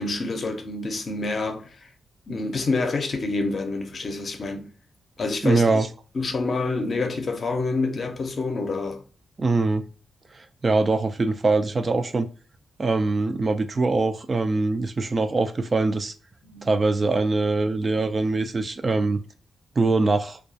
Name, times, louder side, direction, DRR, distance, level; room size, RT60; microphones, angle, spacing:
voice 1, 0.0-1.9 2.3-4.7 5.2-5.7 6.1-9.0 16.5-16.7, left 3 dB, 50° left, 0.6 m, -27 dB
voice 2, 5.4-5.9 9.4-9.8 10.6-12.3 12.8-16.1 16.6-19.2 19.8-20.4, right 3 dB, 40° right, 0.3 m, -23 dB
2.3 x 2.3 x 2.5 m
cardioid pair, 85°, 0 cm